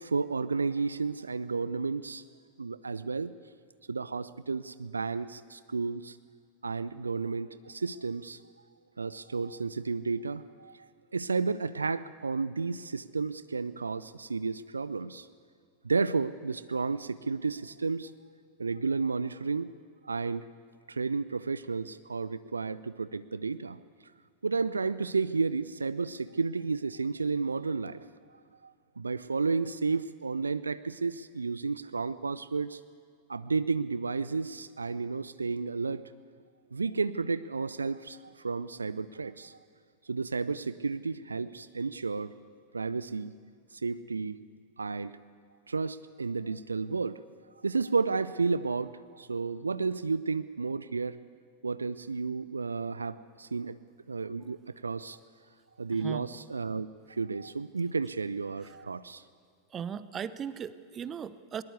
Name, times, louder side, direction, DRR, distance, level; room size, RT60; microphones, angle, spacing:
voice 1, 0.0-2.2 2.6-3.3 3.9-6.2 6.6-8.4 9.0-15.3 15.8-18.1 18.6-19.7 20.0-20.5 20.9-23.8 24.4-28.0 28.6-32.8 33.3-36.0 36.7-39.6 40.1-42.3 42.7-43.3 43.7-44.4 44.8-45.1 45.7-47.2 47.6-51.2 51.6-53.8 54.1-55.2 55.8-59.2, right 4 dB, 75° right, 16 dB, 0.5 m, -32 dB
voice 2, 55.9-56.3 58.6-58.8 59.7-61.6, right 8 dB, 25° right, 16 dB, 0.9 m, -38 dB
21.5 x 19.5 x 8.2 m, 2.3 s
figure-of-eight pair, 90°, 0 cm